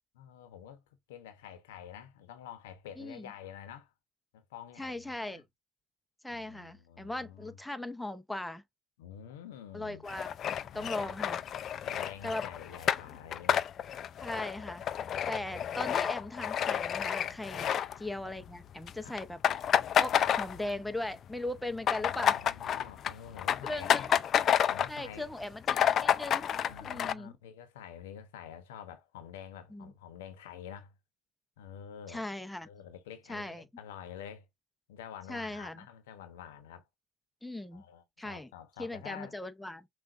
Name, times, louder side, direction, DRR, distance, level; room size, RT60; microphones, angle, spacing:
voice 1, 0.2-0.8 1.1-3.9 4.3-5.4 6.3-7.6 9.0-10.1 10.7-11.2 11.7-13.7 15.1-15.6 17.6-17.8 19.0-19.2 22.0-24.2 24.7-25.3 26.7-30.9 31.6-32.2 32.6-34.5 34.9-36.9 37.7-39.3, left 9 dB, 90° left, 0.8 m, -48 dB
voice 2, 3.0-3.3 4.8-5.4 6.2-8.6 9.7-10.3 10.7-11.4 12.2-12.5 14.2-14.8 15.3-17.7 18.0-22.4 22.7-22.8 23.6-24.2 24.9-26.5 26.8-27.3 29.7-29.9 32.1-32.7 33.3-33.7 35.3-35.8 37.4-37.8 38.2-38.5 38.8-39.9, left 1 dB, 5° left, 0.6 m, -39 dB
sound 1, 10.1-18.5 18.7-18.9 19.2-21.0 21.3-25.0 25.4-25.5 25.6-27.1, left 9 dB, 50° left, 0.3 m, -30 dB
6.0 x 2.4 x 2.4 m
supercardioid pair, 85°, 0 cm